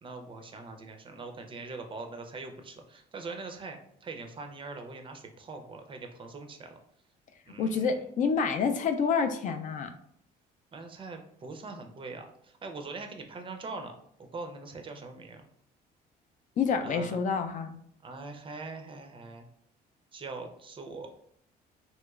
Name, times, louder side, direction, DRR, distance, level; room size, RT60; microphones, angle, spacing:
voice 1, 0.0-6.8 7.5-7.9 10.7-15.5 16.8-17.2 18.0-19.4 20.1-21.1, right 3 dB, 30° right, 5 dB, 0.4 m, -42 dB
voice 2, 7.6-9.9 16.6-17.8, left 5 dB, 50° left, 6 dB, 0.4 m, -28 dB
3.0 x 2.9 x 2.3 m, 0.67 s
cardioid pair, 110°, 17 cm